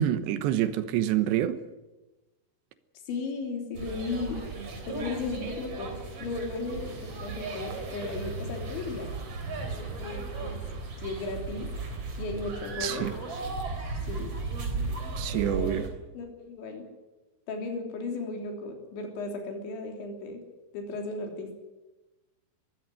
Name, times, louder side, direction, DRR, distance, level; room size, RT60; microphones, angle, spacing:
voice 1, 0.0-1.6 12.8-13.1 15.2-15.9, right 11 dB, 80° right, 3.3 m, -27 dB
voice 2, 3.1-4.4 4.9-9.1 9.8-10.6 11.0-11.7 12.2-13.1 14.1-14.3 15.3-15.8 16.1-16.9 17.5-20.4 20.7-21.5, left 3 dB, 90° left, 5.6 m, -35 dB
sound 1, 3.7-15.9, right 3 dB, 35° right, 4.1 m, -36 dB
22.5 x 15.5 x 9.8 m
omnidirectional pair, 5.1 m